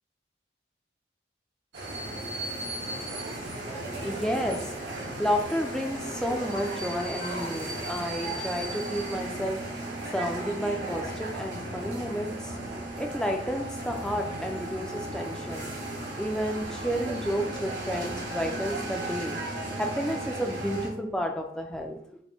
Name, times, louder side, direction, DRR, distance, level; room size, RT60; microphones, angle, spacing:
sound 1, 1.7-20.9, right 1 dB, 85° right, 1.2 m, -35 dB
voice 1, 3.3-15.8 16.1-19.4 19.8-22.2, equal, 5° left, 2 dB, 0.3 m, -31 dB
4.1 x 2.1 x 4.3 m, 0.68 s
head